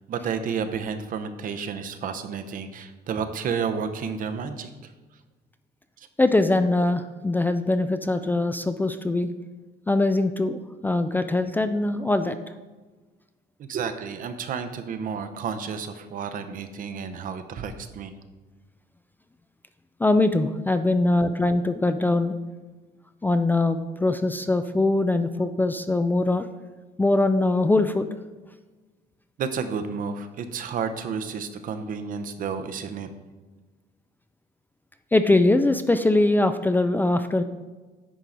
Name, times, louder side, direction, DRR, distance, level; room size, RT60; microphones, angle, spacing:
voice 1, 0.1-4.9 6.0-6.1 13.6-18.1 29.4-33.1, right 6 dB, 55° right, 9 dB, 0.7 m, -31 dB
voice 2, 6.2-9.3 9.9-12.4 20.0-22.3 23.2-26.5 27.0-28.1 35.1-37.4, left 2 dB, 10° left, 9 dB, 0.3 m, -22 dB
10.0 x 4.7 x 3.9 m, 1.3 s
cardioid pair, 110°, 17 cm